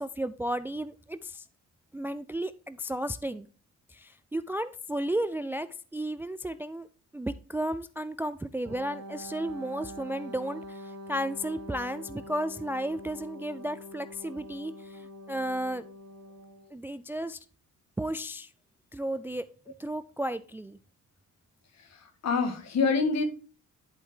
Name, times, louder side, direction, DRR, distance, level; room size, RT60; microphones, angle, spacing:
voice 1, 0.0-1.5 1.9-3.5 3.9-6.9 7.1-15.8 16.7-17.4 18.0-18.5 18.9-19.5 19.8-20.8, right 1 dB, 10° right, 14 dB, 0.3 m, -33 dB
Wind instrument woodwind instrument, 8.6-16.7, equal, 55° right, 1.3 m, -44 dB
voice 2, 21.9-23.2, left 4 dB, 60° left, 7 dB, 1.8 m, -26 dB
11.0 x 4.5 x 3.8 m, 0.37 s
cardioid pair, 90°, 30 cm